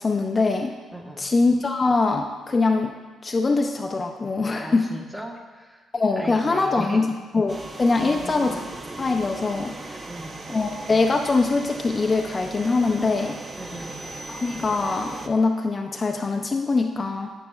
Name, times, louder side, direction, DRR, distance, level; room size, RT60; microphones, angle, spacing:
voice 1, 0.0-0.7 1.2-2.9 3.2-4.9 5.9-8.6 9.0-10.1 10.5-13.4 14.3-17.3, left 3 dB, 30° left, 3 dB, 0.5 m, -23 dB
voice 2, 0.9-1.3 4.6-5.8 6.2-7.0 8.0-8.6 9.9-10.4 13.5-14.0, right 1 dB, 10° right, 0 dB, 1.2 m, -38 dB
sound 1, 7.5-15.3, right 2 dB, 30° right, 0.7 m, -38 dB
9.2 x 8.9 x 2.4 m, 1.3 s
cardioid pair, 90°, 0 cm